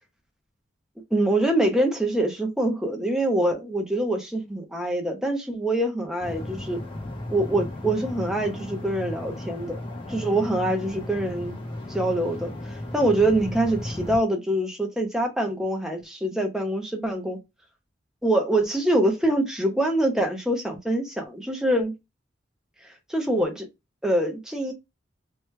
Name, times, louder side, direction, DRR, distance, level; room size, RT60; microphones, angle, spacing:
voice 1, 1.1-6.8 7.3-9.8 10.1-11.6 11.9-17.4 18.2-21.9 23.1-23.7 24.0-24.7, right 1 dB, 5° right, 0.9 m, -25 dB
sound 1, 6.2-14.2, left 1 dB, 30° left, 0.9 m, -35 dB
3.3 x 3.1 x 3.1 m
head